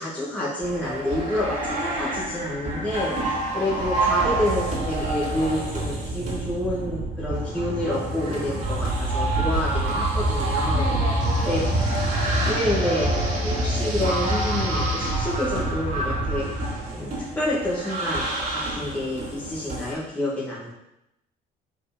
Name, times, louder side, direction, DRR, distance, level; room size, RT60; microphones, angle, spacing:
voice 1, 0.0-3.1 3.5-10.9 11.5-11.6 12.5-13.1 13.4-16.5 16.9-20.7, left 1 dB, 10° left, -8 dB, 1.8 m, -28 dB
sound 1, 0.6-19.9, right 1 dB, 45° right, 2.7 m, -26 dB
voice 2, 2.7-3.4 10.7-11.8, left 1 dB, 40° left, -5 dB, 2.8 m, -36 dB
5.1 x 4.9 x 5.2 m, 0.86 s
cardioid pair, 110°, 17 cm